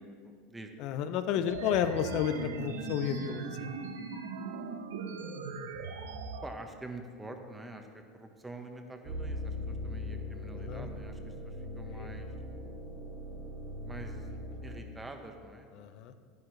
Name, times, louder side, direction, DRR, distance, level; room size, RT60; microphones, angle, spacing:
voice 1, 0.2-0.7 1.3-1.5 6.4-12.3 13.8-14.3 14.6-15.7 16.1-16.3, right 2 dB, 10° right, 5 dB, 1.1 m, -46 dB
voice 2, 0.8-3.7 10.5-10.9 11.9-12.1 15.8-16.1, left 9 dB, 55° left, 11 dB, 0.6 m, -32 dB
sound 1, 1.5-6.5, right 5 dB, 90° right, 0.8 m, -39 dB
sound 2, 9.0-14.8, left 1 dB, 45° right, 1.6 m, -40 dB
10.5 x 9.8 x 3.3 m, 2.1 s
hypercardioid pair, 105°, 0 cm